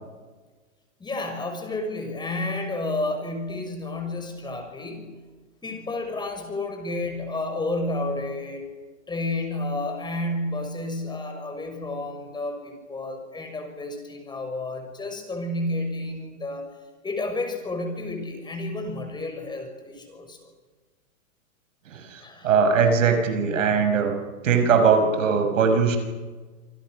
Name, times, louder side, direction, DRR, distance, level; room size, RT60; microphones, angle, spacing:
voice 1, 1.0-5.1 5.6-8.7 9.1-16.7 17.0-20.5 22.2-22.5, left 2 dB, 10° left, 4 dB, 6.2 m, -31 dB
voice 2, 21.9-24.2 24.4-26.0, right 5 dB, 70° right, 6 dB, 6.0 m, -20 dB
28.0 x 27.5 x 6.5 m, 1.3 s
hypercardioid pair, 130°, 40 cm